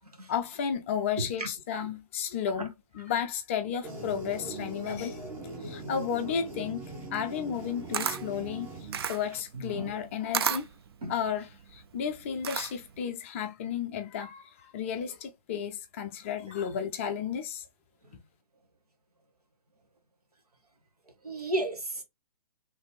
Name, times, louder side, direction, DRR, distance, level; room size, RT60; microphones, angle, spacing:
voice 1, 0.3-5.2 5.6-6.8 7.1-10.7 11.1-17.6, left 8 dB, 20° left, 0.4 m, -33 dB
voice 2, 1.2-1.5 2.5-2.7 9.5-10.0 11.0-11.1 21.2-22.0, right 1 dB, 75° right, 1.5 m, -33 dB
sound 1, 3.8-9.4, right 2 dB, 10° right, 1.0 m, -41 dB
Camera, 7.5-13.0, right 8 dB, 40° right, 0.4 m, -34 dB
4.0 x 3.2 x 3.2 m
figure-of-eight pair, 130°, 20 cm